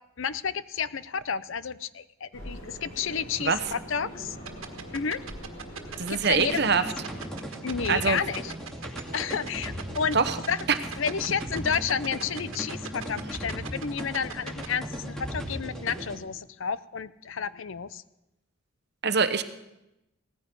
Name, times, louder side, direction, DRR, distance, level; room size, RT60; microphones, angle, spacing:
voice 1, 0.2-4.4 4.9-5.2 6.0-6.9 7.6-8.5 8.9-10.2 10.5-10.6 11.0-18.0, left 6 dB, 65° left, 15 dB, 0.6 m, -31 dB
sound 1, 2.3-7.3, equal, 80° left, 7.5 m, -42 dB
sound 2, 4.5-14.7, right 6 dB, 70° right, 1.6 m, -38 dB
voice 2, 6.0-6.8 7.9-8.2 10.1-10.4 19.0-19.4, right 5 dB, 50° right, 10 dB, 1.0 m, -24 dB
sound 3, 6.3-16.2, equal, 5° left, 2.4 m, -37 dB
17.5 x 14.0 x 5.3 m, 0.90 s
head